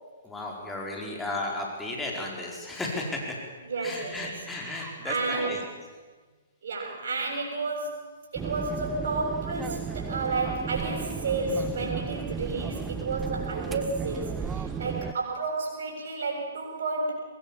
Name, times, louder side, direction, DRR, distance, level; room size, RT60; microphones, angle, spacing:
voice 1, 0.2-3.4 3.8-5.6, left 2 dB, 10° left, -1 dB, 4.9 m, -34 dB
voice 2, 3.6-5.7 6.6-8.0 8.3-17.2, right 3 dB, 55° right, -1 dB, 7.1 m, -31 dB
sound 1, 8.4-15.1, right 6 dB, 10° right, 0.8 m, -34 dB
22.0 x 21.0 x 7.3 m, 1.4 s
figure-of-eight pair, 120°, 0 cm